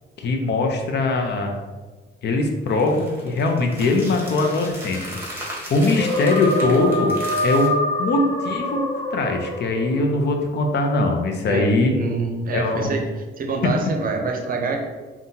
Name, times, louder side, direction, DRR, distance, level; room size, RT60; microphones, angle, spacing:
voice 1, 0.2-1.5 2.2-5.0 5.7-7.1 7.4-7.7 8.0-8.8 9.1-11.9 12.5-12.9, left 2 dB, 60° left, 3 dB, 0.6 m, -21 dB
sound 1, 2.7-7.7, right 1 dB, 10° right, 1.5 m, -36 dB
sound 2, 5.9-10.0, left 1 dB, 25° left, 1.2 m, -25 dB
voice 2, 11.5-14.8, right 3 dB, 45° right, 3 dB, 0.7 m, -26 dB
5.4 x 2.4 x 2.7 m, 1.3 s
cardioid pair, 90°, 20 cm